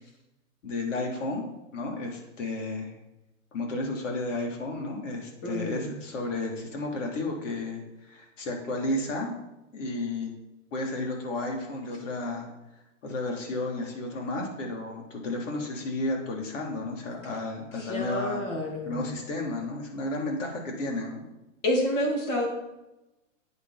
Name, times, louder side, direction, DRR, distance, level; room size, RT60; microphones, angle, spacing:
voice 1, 0.6-1.4 1.7-2.9 3.5-9.3 9.7-10.3 10.7-12.5 13.0-18.4 18.8-21.2, left 2 dB, 70° left, 0 dB, 3.7 m, -32 dB
voice 2, 5.4-5.9 17.8-19.1 21.6-22.5, left 1 dB, 30° left, 0 dB, 3.0 m, -29 dB
11.5 x 8.7 x 4.3 m, 0.97 s
hypercardioid pair, 155°, 39 cm